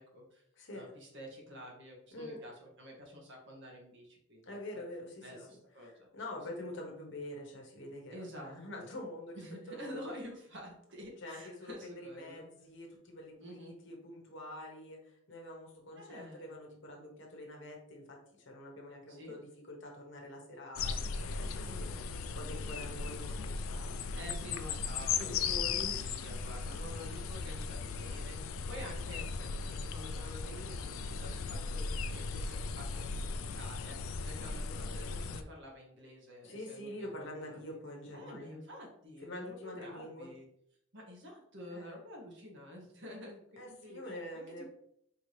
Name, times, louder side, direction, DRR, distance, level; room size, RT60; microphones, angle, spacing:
voice 1, 0.0-0.4 0.7-4.6 5.2-6.1 8.1-8.9 9.3-12.4 13.4-13.8 16.0-16.5 19.1-19.4 21.6-22.0 23.1-23.6 24.1-37.8 38.1-40.5 40.9-44.0 44.3-44.7, equal, 60° right, 0 dB, 1.2 m, -49 dB
voice 2, 4.4-9.4 9.7-10.0 11.2-24.2 25.2-26.1 36.4-38.6 39.2-40.3 41.7-41.9 43.6-44.7, left 1 dB, 60° left, 0 dB, 1.1 m, -46 dB
sound 1, 20.7-35.4, left 5 dB, 75° left, 0.3 m, -37 dB
4.5 x 2.9 x 3.2 m, 0.71 s
head